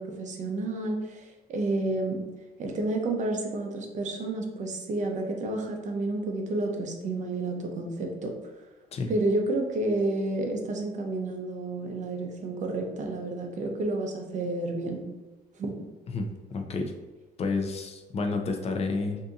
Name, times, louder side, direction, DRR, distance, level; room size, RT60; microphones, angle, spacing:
voice 1, 0.0-2.2 2.6-8.3 9.1-15.1 15.5-15.8, right 2 dB, 45° right, 2 dB, 0.6 m, -30 dB
voice 2, 16.1-16.9 17.4-19.2, left 3 dB, 40° left, 4 dB, 0.4 m, -30 dB
2.7 x 2.6 x 3.5 m, 1.2 s
cardioid pair, 110°, 17 cm